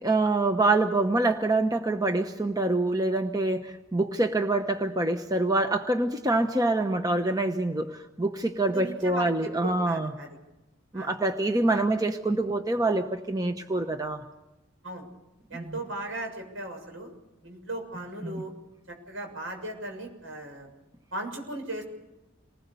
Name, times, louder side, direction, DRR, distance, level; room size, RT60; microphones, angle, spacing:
voice 1, 0.0-10.1 10.9-14.2 15.5-15.7 18.2-18.4, right 2 dB, 20° right, 6 dB, 1.0 m, -26 dB
voice 2, 8.6-10.3 10.9-11.1 11.7-11.8 14.8-15.1 15.5-17.1 17.4-18.5 18.9-20.7 21.1-21.8, right 1 dB, 75° right, 4 dB, 6.9 m, -37 dB
27.5 x 20.0 x 7.0 m, 1.0 s
head